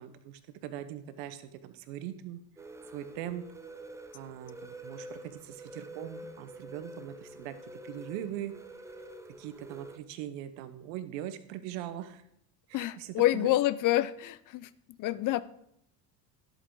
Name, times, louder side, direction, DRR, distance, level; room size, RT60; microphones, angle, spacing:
voice 1, 0.0-2.4 2.9-3.4 4.1-7.6 7.8-8.5 9.4-12.2 12.7-13.5, right 11 dB, 75° right, 11 dB, 1.1 m, -41 dB
sound 1, 2.6-10.0, right 1 dB, 5° right, 0.7 m, -47 dB
voice 2, 12.7-14.7 15.0-15.4, left 15 dB, 40° left, 18 dB, 0.5 m, -27 dB
11.0 x 8.1 x 3.9 m, 0.75 s
supercardioid pair, 90°, 49 cm